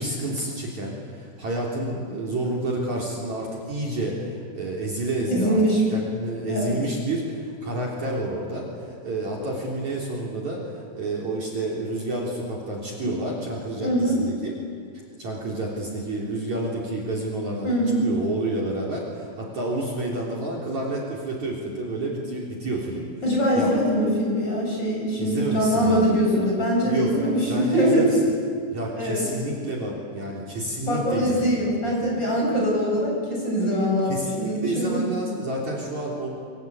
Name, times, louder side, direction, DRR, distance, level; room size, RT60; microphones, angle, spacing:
voice 1, 0.0-5.6 5.9-14.5 15.2-17.7 18.0-23.1 23.5-23.7 25.2-26.2 26.8-27.1 27.5-28.2 28.7-32.3 34.1-36.3, right 2 dB, 45° right, -3 dB, 4.3 m, -29 dB
voice 2, 5.3-5.8 6.4-6.7 13.0-13.2 13.8-14.2 17.6-18.1 23.2-28.1 29.0-29.3 30.9-35.0, equal, 25° left, -3 dB, 8.1 m, -23 dB
28.5 x 24.5 x 8.3 m, 2.2 s
omnidirectional pair, 5.0 m